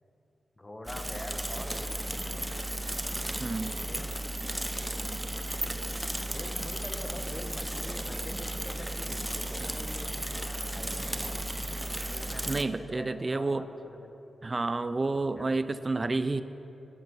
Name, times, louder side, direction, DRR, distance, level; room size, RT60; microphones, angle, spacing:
voice 1, 0.6-2.5 3.4-4.2 6.2-11.4 12.1-14.1 15.3-16.1, left 1 dB, 25° left, 4 dB, 1.5 m, -45 dB
Bicycle / Mechanisms, 0.9-12.6, right 1 dB, 10° right, 0.8 m, -34 dB
voice 2, 3.4-3.7 12.5-13.6 14.4-16.4, right 3 dB, 35° right, 13 dB, 0.5 m, -30 dB
11.0 x 7.9 x 8.1 m, 3.0 s
cardioid pair, 50°, 0 cm